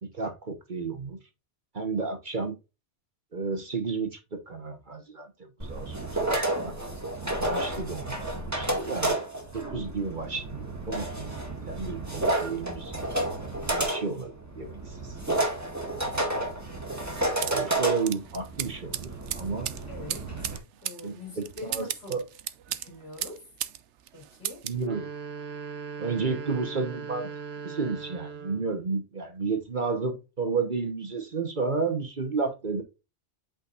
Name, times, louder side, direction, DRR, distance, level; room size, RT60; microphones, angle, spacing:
voice 1, 0.0-1.2 1.7-2.6 3.3-6.7 7.4-8.3 8.6-9.2 9.5-11.4 11.7-13.0 13.7-15.2 17.4-19.7 21.0-21.1 21.6-22.2 24.6-25.1 26.0-27.3 27.6-32.8, right 4 dB, 45° right, 1.3 m, -32 dB
sound 1, 5.6-20.6, right 1 dB, 15° right, 2.0 m, -31 dB
sound 2, 17.4-23.8 24.1-24.8, right 11 dB, 90° right, 1.0 m, -36 dB
voice 2, 19.9-20.5 20.8-22.3 22.7-23.5 24.1-24.7, left 2 dB, 60° left, 3.8 m, -44 dB
sound 3, 24.7-28.8, right 5 dB, 65° right, 1.3 m, -39 dB
8.3 x 5.2 x 2.5 m
omnidirectional pair, 1.2 m